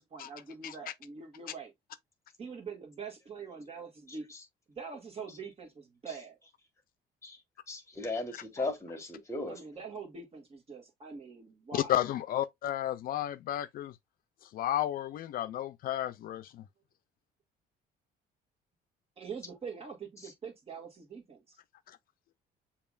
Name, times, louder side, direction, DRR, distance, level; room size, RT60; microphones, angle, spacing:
voice 1, 0.0-1.7 2.4-4.3 4.7-6.4 9.5-12.0 19.2-21.6, right 5 dB, 35° right, 1.7 m, -44 dB
voice 2, 7.7-9.6, left 2 dB, 15° left, 1.7 m, -36 dB
voice 3, 11.7-13.9 14.5-16.6, left 12 dB, 60° left, 0.4 m, -32 dB
6.8 x 2.9 x 2.4 m
cardioid pair, 110°, 17 cm